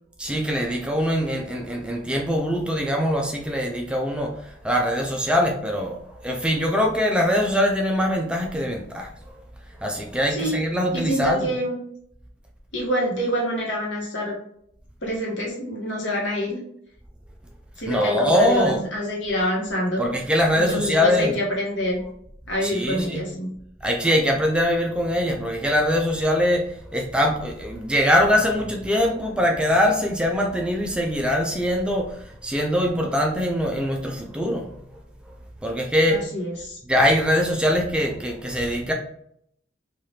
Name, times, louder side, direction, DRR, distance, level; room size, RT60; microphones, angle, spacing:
voice 1, 0.2-9.1 9.8-11.5 17.9-18.8 20.0-21.4 22.6-23.2 23.8-34.8 35.6-36.3 36.9-38.9, equal, 5° right, 1 dB, 0.4 m, -22 dB
voice 2, 10.9-11.8 12.7-14.4 15.0-16.6 17.8-20.0 20.5-22.0 22.5-23.5 36.1-36.8, equal, 75° left, -2 dB, 1.0 m, -26 dB
3.2 x 2.4 x 2.7 m, 0.70 s
head